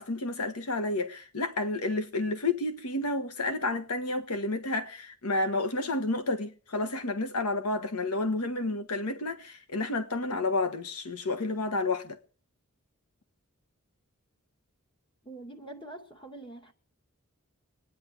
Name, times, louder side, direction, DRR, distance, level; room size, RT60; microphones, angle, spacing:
voice 1, 0.0-12.2, left 2 dB, 85° left, 1.3 m, -30 dB
voice 2, 15.2-16.7, right 2 dB, 20° left, 2.4 m, -44 dB
24.5 x 9.8 x 4.8 m
head